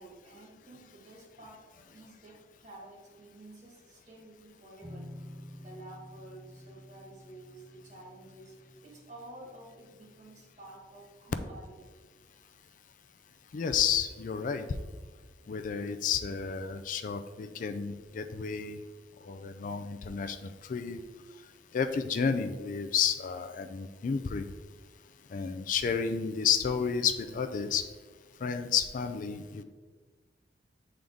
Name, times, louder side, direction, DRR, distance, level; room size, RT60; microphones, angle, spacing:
voice 1, 0.0-5.1 5.6-8.5 8.8-11.8, right 2 dB, 45° right, -2 dB, 1.6 m, -51 dB
sound 1, 4.8-10.4, left 1 dB, 5° left, 0.7 m, -50 dB
voice 2, 13.5-14.8 15.5-18.8 19.2-21.0 21.7-24.5 25.3-27.8 28.4-29.6, left 6 dB, 50° left, 8 dB, 0.3 m, -31 dB
7.3 x 3.8 x 3.5 m, 1.4 s
head